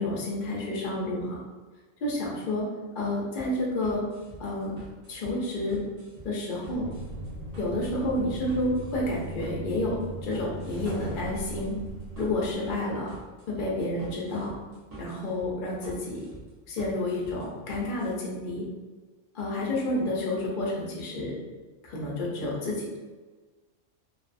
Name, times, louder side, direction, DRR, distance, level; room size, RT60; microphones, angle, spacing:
voice 1, 0.0-1.4 2.0-2.6 2.9-4.0 4.4-4.7 5.1-5.8 6.2-6.9 7.6-10.0 10.2-11.7 12.2-13.1 13.5-14.5 15.0-16.2 16.7-18.6 19.3-21.4 21.8-23.0, left 1 dB, 55° left, -4 dB, 0.6 m, -30 dB
sound 1, 3.4-18.1, right 2 dB, 40° right, 0.7 m, -47 dB
sound 2, 6.7-12.6, right 2 dB, 80° right, 1.0 m, -38 dB
2.6 x 2.3 x 2.4 m, 1.3 s
omnidirectional pair, 1.3 m